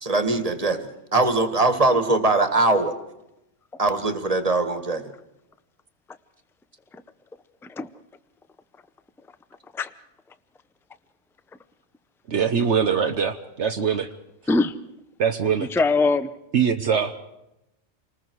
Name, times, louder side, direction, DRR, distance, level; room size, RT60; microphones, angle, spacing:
voice 1, 0.0-2.9 3.8-5.0, right 2 dB, 30° right, 8 dB, 1.8 m, -21 dB
voice 2, 12.3-14.1 15.2-15.7 16.5-17.1, right 7 dB, 65° right, 7 dB, 1.2 m, -22 dB
voice 3, 15.6-16.3, left 3 dB, 5° left, 12 dB, 0.5 m, -22 dB
29.0 x 20.0 x 4.7 m, 0.90 s
omnidirectional pair, 1.3 m